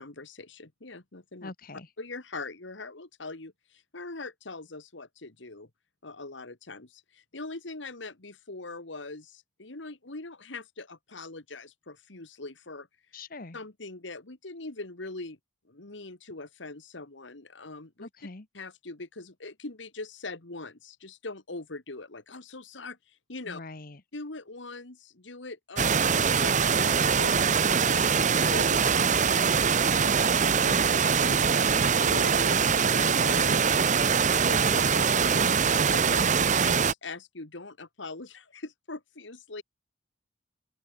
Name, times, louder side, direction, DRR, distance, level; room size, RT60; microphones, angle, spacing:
voice 1, 0.0-1.5 2.0-5.7 6.0-13.2 13.5-15.4 15.7-18.1 18.5-23.6 24.1-30.7 31.2-39.6, left 3 dB, 75° left, 2.1 m, -42 dB
voice 2, 1.4-1.9 13.1-13.6 18.0-18.4 23.5-24.0 30.6-30.9, left 2 dB, 50° left, 1.3 m, -42 dB
sound 1, 25.8-36.9, right 6 dB, 40° right, 0.9 m, -23 dB
open air
head